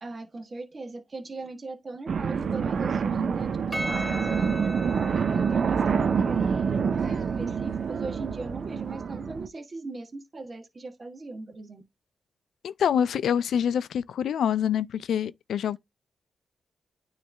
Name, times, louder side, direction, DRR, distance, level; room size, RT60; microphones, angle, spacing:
voice 1, 0.0-4.7 5.1-11.8, right 2 dB, 40° right, 1.4 m, -39 dB
sound 1, 2.1-9.5, right 6 dB, 65° right, 0.5 m, -27 dB
Percussion, 3.7-8.3, equal, ahead, 2.6 m, -38 dB
voice 2, 12.6-15.8, left 8 dB, 85° left, 0.3 m, -26 dB
9.3 x 3.2 x 3.4 m
cardioid pair, 75°, 0 cm